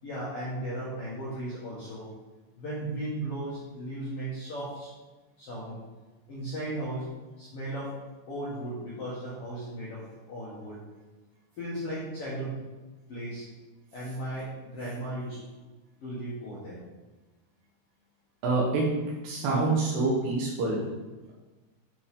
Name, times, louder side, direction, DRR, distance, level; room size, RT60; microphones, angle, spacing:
voice 1, 0.0-2.1 2.6-4.9 5.4-5.8 6.3-7.1 7.4-7.9 8.3-10.0 10.3-10.8 11.6-12.6 13.1-13.4 13.9-15.4 16.0-16.8, right 1 dB, 65° left, -9 dB, 1.5 m, -36 dB
voice 2, 18.4-18.9 19.2-20.8, right 3 dB, 80° right, -4 dB, 3.1 m, -26 dB
9.3 x 4.5 x 3.6 m, 1.2 s
omnidirectional pair, 4.9 m